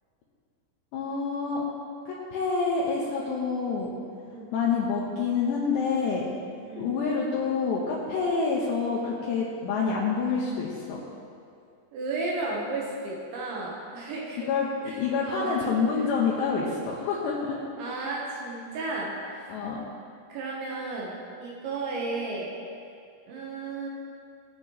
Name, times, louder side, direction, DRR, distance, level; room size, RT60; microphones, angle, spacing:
voice 1, 0.9-1.6 2.1-3.9 4.5-6.3 6.8-11.0 14.4-17.6 19.5-19.8, left 5 dB, 75° left, -5 dB, 3.0 m, -27 dB
voice 2, 11.9-14.5 14.9-15.0 15.2-15.5 15.9-16.0 17.8-19.5 20.3-22.5 23.3-23.9, right 3 dB, 75° right, -3 dB, 3.4 m, -33 dB
20.5 x 7.5 x 3.1 m, 2.4 s
omnidirectional pair, 5.6 m